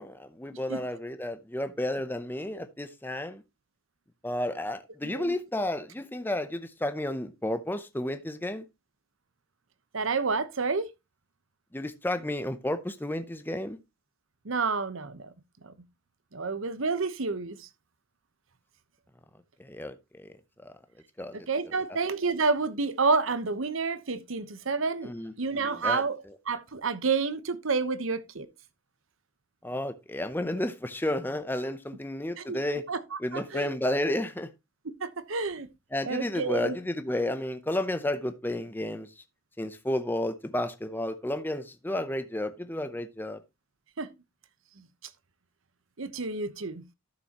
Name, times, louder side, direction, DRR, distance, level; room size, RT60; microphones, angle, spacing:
voice 1, 0.0-3.4 4.2-8.7 11.7-13.8 19.6-20.3 20.6-20.7 21.2-21.4 25.0-26.0 29.6-32.8 33.2-34.5 35.9-39.1 39.6-43.4, left 1 dB, 10° left, 0.6 m, -32 dB
voice 2, 5.0-5.4 9.9-10.9 14.4-15.3 15.6-15.7 16.3-17.7 21.3-25.1 25.4-26.2 26.5-28.5 32.4-32.6 32.9-33.7 35.0-35.7 36.1-36.8 44.0-44.1 46.0-46.8, right 4 dB, 70° right, 1.0 m, -29 dB
12.5 x 6.9 x 2.9 m
head